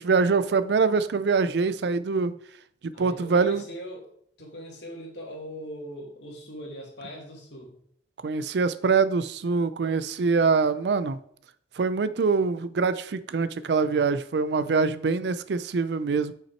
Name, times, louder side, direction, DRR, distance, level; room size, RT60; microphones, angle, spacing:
voice 1, 0.0-2.3 2.8-3.6 8.2-11.2 11.8-16.3, right 4 dB, 65° right, 14 dB, 0.4 m, -24 dB
voice 2, 2.9-4.1 4.4-7.8, equal, 70° left, 0 dB, 1.9 m, -40 dB
5.9 x 5.7 x 4.4 m, 0.64 s
head